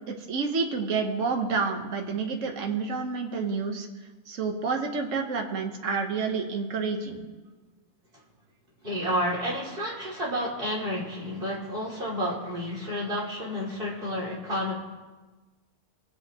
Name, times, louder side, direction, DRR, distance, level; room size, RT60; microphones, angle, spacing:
voice 1, 0.1-3.9 4.3-7.2, right 4 dB, 65° right, 3 dB, 1.5 m, -29 dB
voice 2, 8.8-14.7, equal, 40° right, -4 dB, 3.0 m, -30 dB
23.5 x 8.0 x 3.0 m, 1.2 s
omnidirectional pair, 1.5 m